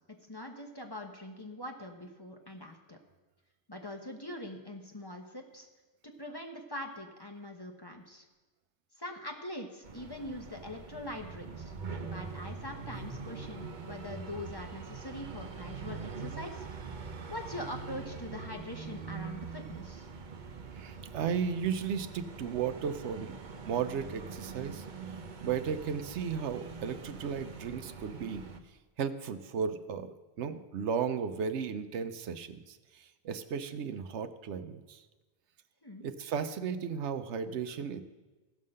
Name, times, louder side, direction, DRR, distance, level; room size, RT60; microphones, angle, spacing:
voice 1, 0.3-3.0 3.7-5.7 6.0-8.3 9.0-11.7 12.0-16.6 17.0-20.1 35.8-36.1, left 1 dB, 20° left, 2 dB, 0.9 m, -43 dB
sound 1, 9.8-28.6, right 5 dB, 50° right, 0.8 m, -43 dB
voice 2, 20.7-23.3 23.6-28.4 29.0-35.0 36.0-38.0, right 7 dB, 80° right, 10 dB, 0.9 m, -35 dB
15.5 x 5.6 x 6.5 m, 1.2 s
omnidirectional pair, 1.2 m